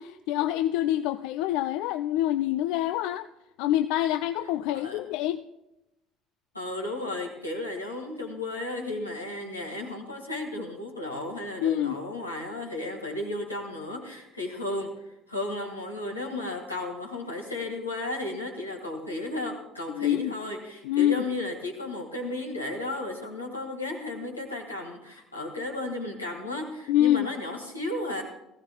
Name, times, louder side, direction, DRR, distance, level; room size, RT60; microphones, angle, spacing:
voice 1, 0.0-3.3 3.6-5.4 11.6-12.0 19.9-20.3 20.8-21.2 26.9-27.3, left 13 dB, 60° left, 11 dB, 0.3 m, -26 dB
voice 2, 4.7-5.0 6.5-14.9 15.3-28.2, left 2 dB, 85° left, 1 dB, 1.7 m, -34 dB
18.5 x 15.5 x 2.3 m, 0.92 s
figure-of-eight pair, 60°, 0 cm